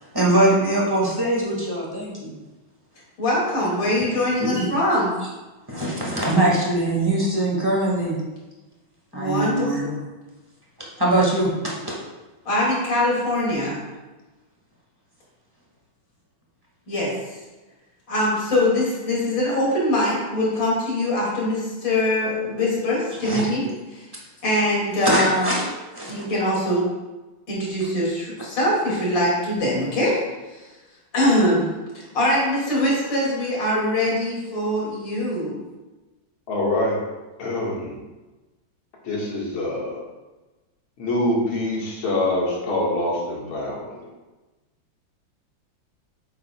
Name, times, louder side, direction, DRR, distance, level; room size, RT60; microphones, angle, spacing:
voice 1, 0.1-2.3 4.4-4.7 5.7-8.2 9.1-9.9 11.0-11.9 23.2-23.4 25.0-25.7 25.9-26.2, right 1 dB, 10° right, -5 dB, 1.7 m, -22 dB
voice 2, 3.2-5.1 9.1-10.0 12.4-13.8 16.9-17.1 18.1-24.1 24.4-25.5 26.1-26.8 27.5-30.2 30.5-30.7 31.1-35.6, left 1 dB, 65° left, -5 dB, 3.1 m, -23 dB
voice 3, 36.5-37.0 37.4-38.0 39.0-40.0 41.0-43.9, left 1 dB, 85° left, -3 dB, 2.5 m, -25 dB
9.0 x 7.3 x 2.3 m, 1.1 s
omnidirectional pair, 2.2 m